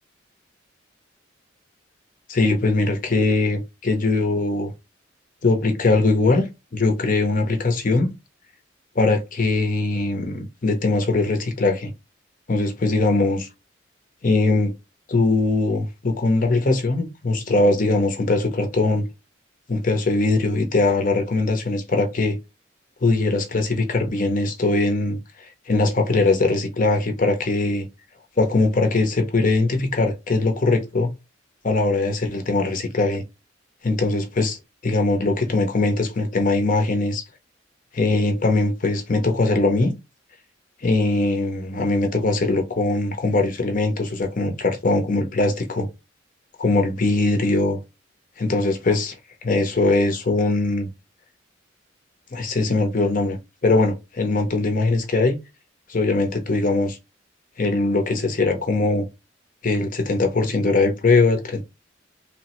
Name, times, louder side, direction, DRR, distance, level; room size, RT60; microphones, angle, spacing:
voice 1, 2.3-4.7 5.4-6.4 6.7-8.1 9.0-11.9 12.5-13.5 14.2-14.7 15.1-19.0 19.7-22.4 23.0-27.9 28.4-31.1 31.6-33.2 33.8-34.6 34.8-37.2 37.9-39.9 40.8-45.9 46.6-47.8 48.4-49.2 49.4-50.9 52.3-53.4 53.6-55.4 55.9-57.0 57.6-59.1 59.6-61.6, left 2 dB, 40° left, 0.6 m, -21 dB
3.1 x 2.1 x 2.9 m
head